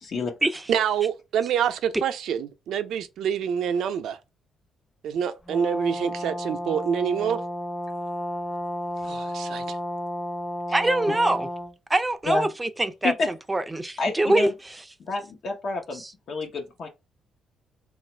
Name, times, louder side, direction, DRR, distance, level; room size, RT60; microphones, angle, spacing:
voice 1, 0.0-0.3 10.7-10.8 11.1-11.2 12.2-12.5 13.0-13.3 14.0-14.5 15.0-16.0 16.3-16.9, left 3 dB, 60° left, 0.8 m, -28 dB
voice 2, 0.7-4.2 5.0-7.4 9.0-9.8, right 8 dB, 75° right, 0.5 m, -26 dB
Brass instrument, 5.5-11.7, equal, 25° left, 0.9 m, -32 dB
voice 3, 10.7-11.5 11.9-13.1 13.5-14.8 16.0-16.1, right 2 dB, 15° right, 0.4 m, -24 dB
3.0 x 2.4 x 4.3 m
cardioid pair, 90°, 0 cm